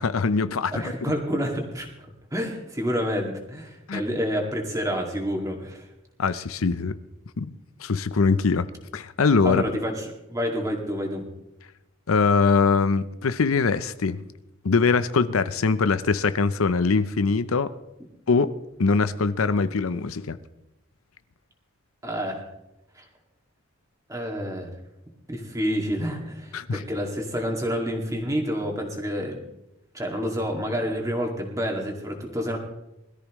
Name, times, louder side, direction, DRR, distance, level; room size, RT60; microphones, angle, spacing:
voice 1, 0.0-0.7 3.9-4.0 6.2-7.0 7.4-7.5 7.8-8.7 8.9-9.6 12.1-14.2 14.6-17.7 18.3-18.5 18.8-20.4 26.5-26.8, left 4 dB, 90° left, 13 dB, 0.7 m, -22 dB
voice 2, 0.7-2.1 2.3-5.9 9.4-11.2 22.0-22.4 23.0-23.1 24.1-24.7 25.3-29.4 29.9-32.6, equal, 15° right, 1 dB, 2.2 m, -28 dB
21.0 x 13.5 x 3.1 m, 0.89 s
head